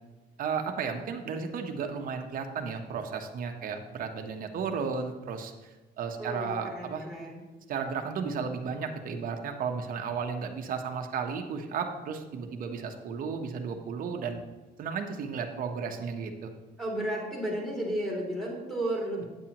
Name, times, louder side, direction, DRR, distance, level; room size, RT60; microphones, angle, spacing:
voice 1, 0.4-7.1 7.7-14.4 14.8-16.5, right 5 dB, 55° right, 4 dB, 1.0 m, -34 dB
voice 2, 6.2-7.4 16.8-19.3, right 1 dB, ahead, -3 dB, 2.8 m, -33 dB
8.6 x 8.0 x 2.9 m, 1.2 s
cardioid pair, 110°, 17 cm